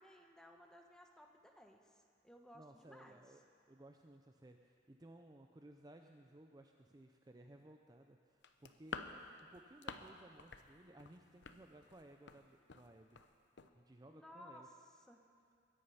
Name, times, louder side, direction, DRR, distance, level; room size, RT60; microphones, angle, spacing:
voice 1, 0.0-3.3 14.1-15.2, equal, 5° left, 2 dB, 1.2 m, -59 dB
voice 2, 2.5-9.0 9.5-13.2 13.8-14.7, right 1 dB, 20° right, 4 dB, 0.5 m, -59 dB
sound 1, 8.4-10.1 10.4-10.7 10.9-12.4 12.7-12.9 13.2-13.3 13.6-13.7, left 4 dB, 70° left, 0.8 m, -49 dB
22.0 x 10.0 x 5.6 m, 2.3 s
head